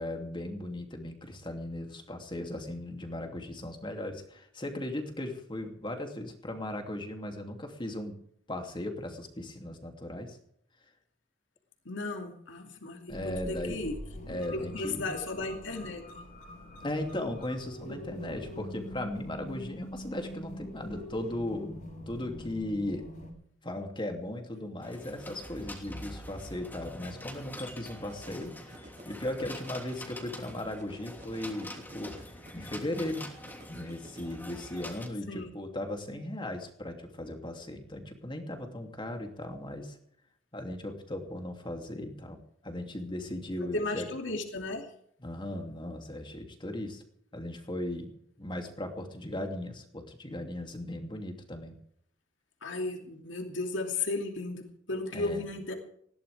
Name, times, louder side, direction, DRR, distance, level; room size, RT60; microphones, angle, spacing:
voice 1, 0.0-8.2 8.5-10.4 13.1-13.8 14.3-15.1 16.8-23.1 23.6-33.3 33.7-40.0 40.5-44.1 45.2-47.0 47.3-51.7 54.9-55.5, left 1 dB, 25° left, 4 dB, 2.8 m, -37 dB
voice 2, 11.9-14.0 14.5-16.0 17.9-18.0 35.3-35.5 43.7-44.9 52.6-55.8, left 2 dB, 70° left, 4 dB, 2.7 m, -35 dB
sound 1, 13.1-23.3, equal, 45° left, 6.2 m, -44 dB
sound 2, 24.8-35.1, left 1 dB, 10° left, 3.0 m, -45 dB
sound 3, 28.1-34.3, right 1 dB, 40° right, 3.9 m, -50 dB
20.0 x 17.0 x 3.5 m, 0.67 s
head